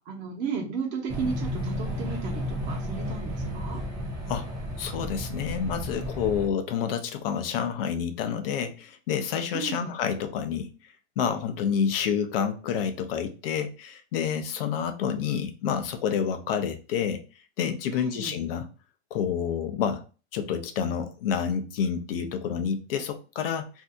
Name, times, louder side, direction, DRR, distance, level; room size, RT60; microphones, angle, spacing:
voice 1, 0.1-3.8 9.5-9.9 17.9-18.3, right 5 dB, 30° right, -1 dB, 1.0 m, -34 dB
sound 1, 1.1-6.5, equal, 10° right, 0.4 m, -33 dB
voice 2, 4.8-10.7 11.2-17.2 17.6-18.7 19.1-20.0 20.3-23.7, left 7 dB, 55° left, 7 dB, 0.7 m, -28 dB
2.7 x 2.6 x 3.4 m, 0.34 s
supercardioid pair, 170°, 34 cm